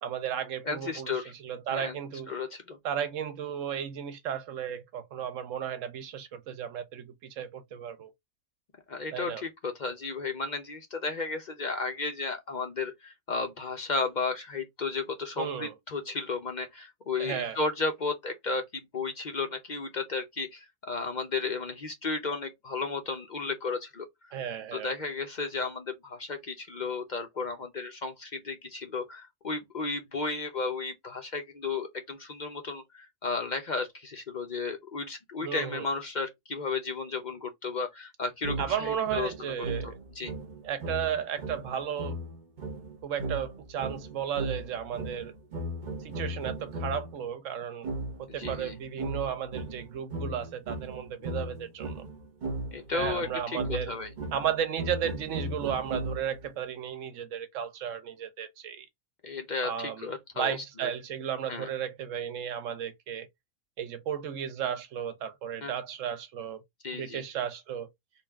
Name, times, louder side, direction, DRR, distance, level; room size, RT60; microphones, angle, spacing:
voice 1, 0.0-2.3 2.8-8.1 9.1-9.4 15.4-15.7 17.2-17.6 24.3-24.9 35.4-35.9 38.6-40.0 40.6-42.2 43.0-45.3 46.0-47.9 48.2-52.0 52.9-53.9 54.3-58.9 59.6-60.1 60.4-63.3 63.8-66.6 66.9-67.9, right 9 dB, 65° right, 1.0 m, -34 dB
voice 2, 0.6-1.3 1.7-2.0 2.3-2.8 8.9-24.3 24.7-39.5 39.8-40.3 48.4-48.7 51.2-51.4 52.7-53.6 53.9-54.1 59.2-60.6 60.8-60.9 61.5-61.7 65.6-65.7 66.8-67.2, left 4 dB, 45° left, 0.6 m, -34 dB
sound 1, 38.4-47.2 47.8-56.5, right 1 dB, 40° right, 0.8 m, -37 dB
4.0 x 2.3 x 3.4 m
omnidirectional pair, 1.6 m